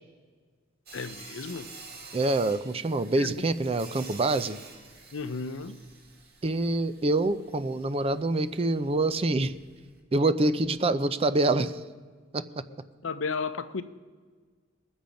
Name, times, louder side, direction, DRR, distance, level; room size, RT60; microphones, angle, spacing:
voice 1, 0.9-1.7 3.2-3.5 5.1-5.7 13.0-13.8, left 4 dB, 80° left, 11 dB, 0.6 m, -33 dB
Sawing, 0.9-10.0, right 4 dB, 55° right, 2.1 m, -49 dB
voice 2, 2.1-4.6 6.4-9.5 10.1-11.7 12.3-12.4, right 2 dB, 30° right, 12 dB, 0.4 m, -26 dB
20.0 x 7.1 x 5.2 m, 1.5 s
head